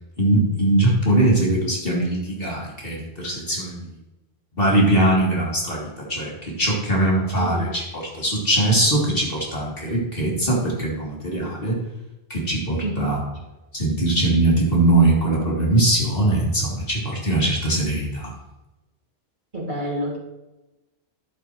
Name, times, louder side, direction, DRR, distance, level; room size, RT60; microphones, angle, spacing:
voice 1, 0.2-3.8 4.6-7.8 8.2-11.8 12.3-13.2 13.7-18.3, right 1 dB, 55° left, -4 dB, 3.3 m, -21 dB
voice 2, 7.3-7.7 12.8-13.2 19.5-20.2, equal, 45° right, -3 dB, 2.7 m, -28 dB
11.5 x 11.5 x 3.1 m, 1.0 s
omnidirectional pair, 1.1 m